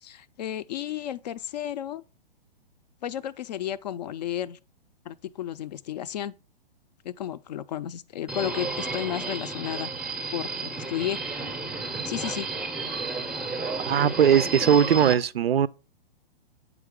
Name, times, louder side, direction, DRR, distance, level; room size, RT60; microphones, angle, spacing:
voice 1, 0.0-2.0 3.0-4.6 5.1-6.3 7.0-9.9 10.3-11.2 12.1-12.5, left 11 dB, 45° left, 0.4 m, -33 dB
Subway metro underground, 8.3-15.1, right 3 dB, 5° right, 0.5 m, -32 dB
voice 2, 13.8-15.7, right 8 dB, 80° right, 0.5 m, -20 dB
8.2 x 4.9 x 3.6 m
figure-of-eight pair, 120°, 29 cm